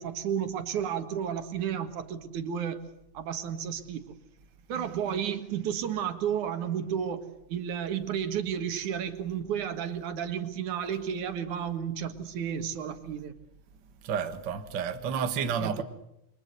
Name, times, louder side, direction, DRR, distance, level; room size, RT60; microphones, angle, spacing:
voice 1, 0.0-4.1 4.7-13.3 15.6-15.8, right 8 dB, 75° right, 3.1 m, -32 dB
voice 2, 14.0-15.8, right 7 dB, 45° right, 1.9 m, -30 dB
28.5 x 24.0 x 6.8 m
omnidirectional pair, 3.5 m